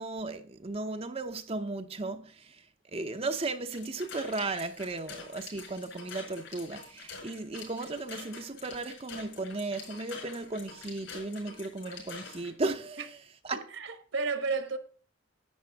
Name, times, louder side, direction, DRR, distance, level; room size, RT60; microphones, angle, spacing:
voice 1, 0.0-2.6 2.9-13.1 13.4-13.6, right 3 dB, 30° right, 0.6 m, -35 dB
sound 1, 3.7-12.5, left 5 dB, 65° left, 4.9 m, -46 dB
voice 2, 13.5-14.8, right 4 dB, 70° right, 1.3 m, -32 dB
10.5 x 8.5 x 3.5 m
head